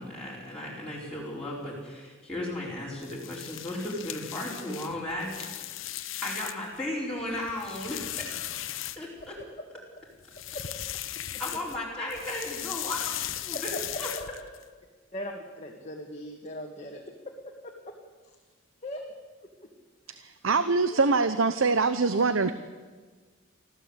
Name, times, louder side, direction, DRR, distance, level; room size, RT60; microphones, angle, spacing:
voice 1, 0.0-5.6 6.2-8.0 8.9-9.3 11.4-13.0 13.4-13.7 14.0-14.1, left 1 dB, 5° left, -6 dB, 5.2 m, -35 dB
sound 1, 2.9-6.8 7.2-9.4 10.2-11.8 12.1-14.6, left 12 dB, 80° left, 0.9 m, -37 dB
voice 2, 15.1-17.9 18.8-19.0 19.4-19.5 20.9-21.0, left 1 dB, 35° left, 0 dB, 2.0 m, -39 dB
voice 3, 20.1-22.5, right 4 dB, 80° right, 11 dB, 0.8 m, -24 dB
25.0 x 15.0 x 8.3 m, 1.4 s
head